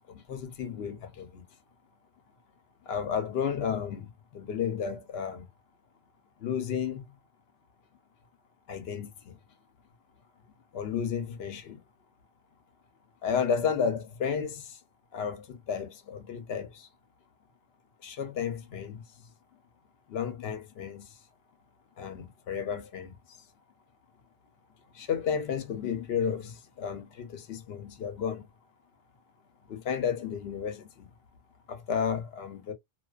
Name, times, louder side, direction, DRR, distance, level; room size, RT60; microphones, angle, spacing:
voice 1, 0.1-1.4 2.9-5.4 6.4-7.1 8.7-9.3 10.7-11.8 13.2-14.8 15.1-16.9 18.0-19.0 20.1-21.1 22.0-23.1 24.9-28.5 29.7-31.1 31.7-32.7, left 7 dB, 70° left, 0.9 m, -32 dB
2.4 x 2.3 x 2.3 m
omnidirectional pair, 1.1 m